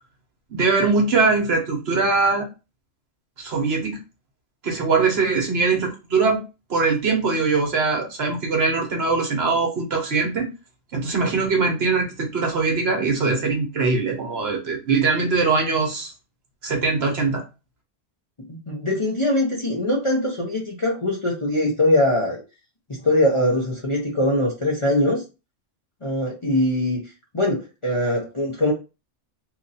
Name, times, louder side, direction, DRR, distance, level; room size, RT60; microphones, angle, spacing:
voice 1, 0.5-2.4 3.4-4.0 4.6-6.4 6.7-10.5 10.9-16.1 16.6-17.4, right 4 dB, 55° right, 2 dB, 1.1 m, -21 dB
voice 2, 18.5-22.4 22.9-25.2 26.0-27.0 27.3-28.7, left 1 dB, 30° left, -3 dB, 0.7 m, -22 dB
3.0 x 2.5 x 4.0 m, 0.29 s
omnidirectional pair, 1.3 m